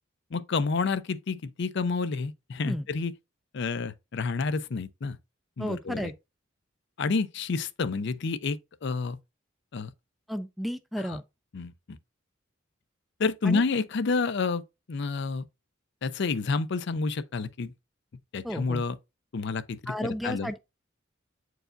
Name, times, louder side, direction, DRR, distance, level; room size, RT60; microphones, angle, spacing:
voice 1, 0.3-3.1 3.5-5.2 5.6-6.1 7.0-9.2 9.7-9.9 11.0-11.2 11.5-11.7 13.2-14.6 14.9-15.4 16.0-17.7 18.3-19.0 19.3-20.5, left 4 dB, 60° left, 0.5 m, -29 dB
voice 2, 5.6-6.1 10.3-11.2 13.4-13.6 18.4-18.8 19.9-20.6, equal, ahead, 0.3 m, -32 dB
8.8 x 4.6 x 2.6 m
head